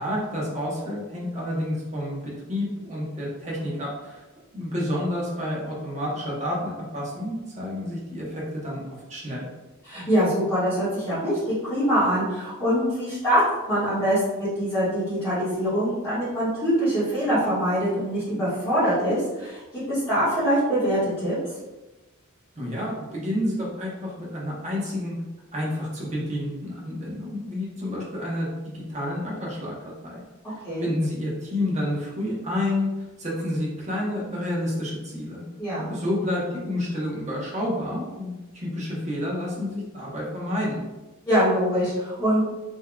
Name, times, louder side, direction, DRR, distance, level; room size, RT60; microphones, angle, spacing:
voice 1, 0.0-4.2 4.5-8.8 9.1-9.5 22.6-25.2 25.5-29.7 30.0-30.2 30.5-32.9 33.2-35.4 35.9-40.8, left 1 dB, 35° right, -4 dB, 0.9 m, -29 dB
voice 2, 9.8-21.3 30.6-30.9 35.6-36.0 41.3-42.4, equal, 10° left, -15 dB, 1.4 m, -24 dB
3.8 x 3.0 x 2.2 m, 1.1 s
head